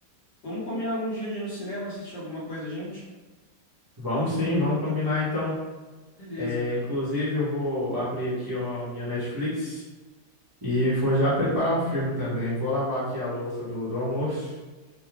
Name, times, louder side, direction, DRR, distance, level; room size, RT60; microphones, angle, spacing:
voice 1, 0.4-3.0 6.2-6.8, equal, 70° left, -7 dB, 2.0 m, -33 dB
voice 2, 4.0-5.5 6.4-9.8 10.6-14.5, left 1 dB, 15° right, -9 dB, 0.9 m, -27 dB
5.3 x 2.3 x 3.5 m, 1.2 s
omnidirectional pair, 1.8 m